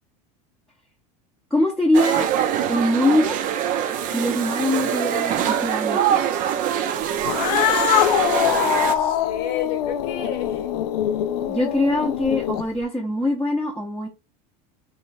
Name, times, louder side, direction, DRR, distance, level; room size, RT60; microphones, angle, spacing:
voice 1, 1.5-2.3 2.7-3.4 4.1-6.3 11.5-14.1, left 1 dB, 5° left, 0.7 m, -22 dB
sound 1, 1.9-9.0, right 9 dB, 45° right, 0.6 m, -24 dB
Cat, 7.2-12.8, left 11 dB, 85° left, 0.5 m, -23 dB
voice 2, 8.0-10.7, left 8 dB, 60° left, 0.9 m, -31 dB
3.2 x 2.4 x 4.0 m
supercardioid pair, 120°, 20 cm